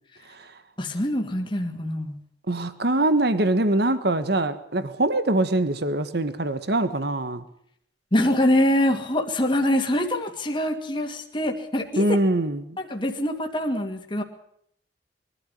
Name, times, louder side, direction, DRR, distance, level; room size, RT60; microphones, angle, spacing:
voice 1, 0.8-2.2 8.1-12.1 12.8-14.2, left 1 dB, 25° left, 2 dB, 2.4 m, -24 dB
voice 2, 2.5-7.4 12.0-12.8, right 2 dB, 60° right, 12 dB, 1.5 m, -23 dB
22.5 x 13.0 x 10.0 m, 0.69 s
head